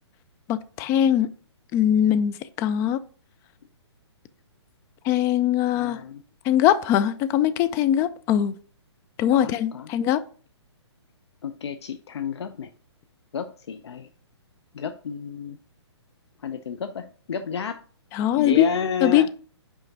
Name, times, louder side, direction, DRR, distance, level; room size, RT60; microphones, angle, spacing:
voice 1, 0.5-1.3 1.7-3.0 5.0-6.0 6.4-8.5 9.2-10.2 18.1-18.7 19.0-19.3, left 10 dB, 20° left, 0.3 m, -21 dB
voice 2, 5.8-6.2 9.3-9.9 11.4-12.7 13.3-14.1 14.7-15.6 16.4-17.8 18.4-19.3, left 6 dB, 65° left, 0.5 m, -31 dB
5.9 x 5.0 x 3.9 m
figure-of-eight pair, 130°, 15 cm